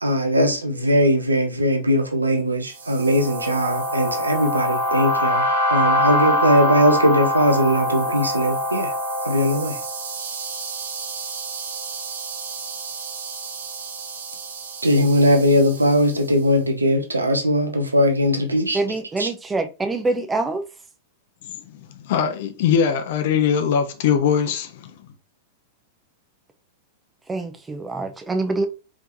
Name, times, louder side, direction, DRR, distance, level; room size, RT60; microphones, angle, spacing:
voice 1, 0.0-8.9 9.2-9.7 14.8-18.8 19.2-19.3, equal, 90° right, 1.0 m, -20 dB
sound 1, 2.8-16.1, equal, 70° right, 1.4 m, -25 dB
voice 2, 18.7-20.6 27.3-28.7, right 2 dB, 15° right, 0.8 m, -25 dB
voice 3, 22.0-24.9, left 7 dB, 55° left, 0.9 m, -21 dB
4.9 x 3.7 x 2.8 m
figure-of-eight pair, 95°, 0 cm